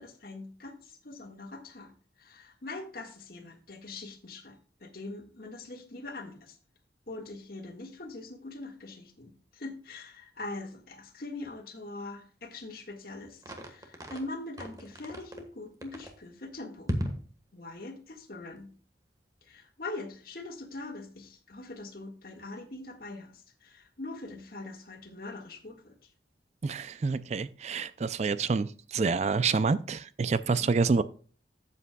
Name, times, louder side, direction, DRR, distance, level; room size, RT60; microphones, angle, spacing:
voice 1, 0.0-1.9 2.2-6.6 7.1-17.0 17.5-18.7 19.5-26.0 30.5-30.6, left 2 dB, 55° left, 4 dB, 1.7 m, -42 dB
sound 1, 13.4-14.3 14.6-15.4 15.8-16.2 16.9-17.3, equal, 20° right, 1.4 m, -35 dB
voice 2, 26.6-31.0, right 4 dB, 40° right, 15 dB, 0.4 m, -28 dB
12.5 x 8.4 x 2.3 m, 0.42 s
head